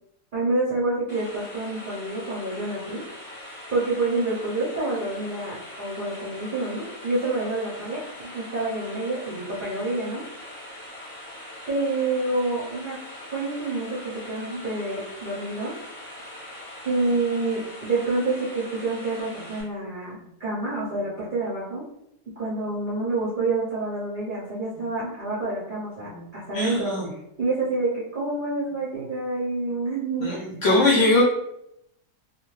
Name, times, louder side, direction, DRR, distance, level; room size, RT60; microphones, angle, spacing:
voice 1, 0.3-3.0 3.7-10.2 11.7-13.0 13.3-14.0 14.2-15.7 16.8-21.8 22.4-27.0 27.4-30.6, right 2 dB, 50° right, -8 dB, 0.6 m, -28 dB
sound 1, 1.1-19.6, left 1 dB, 25° left, 0.9 m, -42 dB
voice 2, 26.5-27.1 30.2-31.2, left 2 dB, 60° left, -5 dB, 0.7 m, -21 dB
2.4 x 2.4 x 3.1 m, 0.79 s
omnidirectional pair, 1.8 m